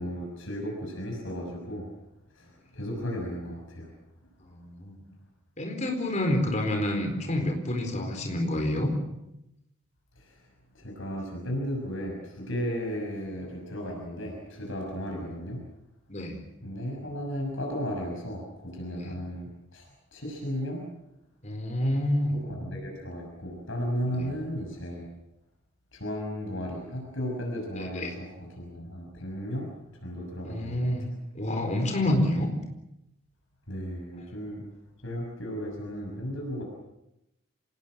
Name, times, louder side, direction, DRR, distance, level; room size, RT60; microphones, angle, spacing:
voice 1, 0.0-1.9 2.7-3.9 10.8-15.6 16.6-19.8 20.1-20.8 22.4-25.0 26.0-29.7 30.0-30.8 33.7-34.6 35.0-36.6, equal, 65° left, 0 dB, 6.4 m, -34 dB
voice 2, 4.5-5.0 5.6-8.9 15.0-15.1 16.1-16.4 18.9-19.1 21.4-22.4 24.1-24.3 27.8-28.1 30.4-31.1 31.3-32.5, left 1 dB, 35° left, 3 dB, 4.4 m, -28 dB
26.5 x 19.0 x 7.6 m, 0.88 s
head